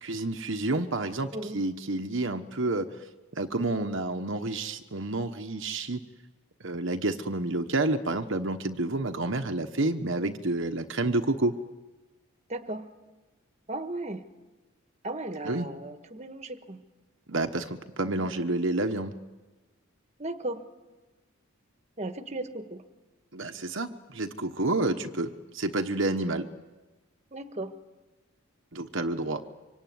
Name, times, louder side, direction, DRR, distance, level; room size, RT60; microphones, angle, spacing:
voice 1, 0.0-2.9 3.3-6.0 6.6-11.5 15.4-15.7 17.3-19.1 23.3-26.5 28.7-29.4, right 2 dB, 55° right, 6 dB, 1.2 m, -29 dB
voice 2, 12.5-12.9 13.7-14.2 15.0-16.8 20.2-20.6 22.0-22.8 27.3-27.7, right 2 dB, 30° right, 8 dB, 1.5 m, -36 dB
25.5 x 25.0 x 9.5 m, 1.2 s
head